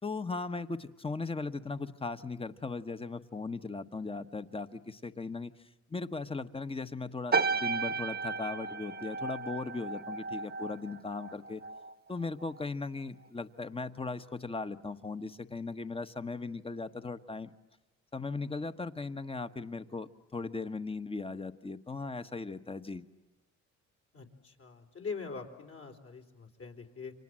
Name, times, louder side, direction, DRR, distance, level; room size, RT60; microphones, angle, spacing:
voice 1, 0.0-5.5 5.9-11.6 12.1-17.5 18.1-23.1, left 3 dB, 20° left, 11 dB, 1.3 m, -38 dB
sound 1, 7.3-11.9 12.2-12.6, right 4 dB, 30° right, 1.1 m, -34 dB
voice 2, 24.1-27.1, left 5 dB, 50° left, 3 dB, 4.1 m, -43 dB
30.0 x 26.0 x 7.6 m, 1.0 s
cardioid pair, 90°, 30 cm